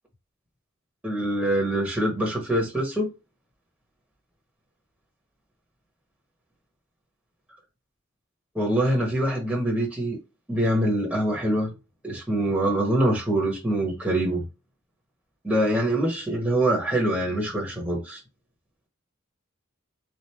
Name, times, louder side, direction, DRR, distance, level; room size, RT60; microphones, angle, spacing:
voice 1, 1.0-3.1 8.5-10.2 10.5-11.7 12.0-14.4 15.4-18.2, right 1 dB, 5° right, 1.0 m, -24 dB
3.8 x 3.4 x 2.9 m
head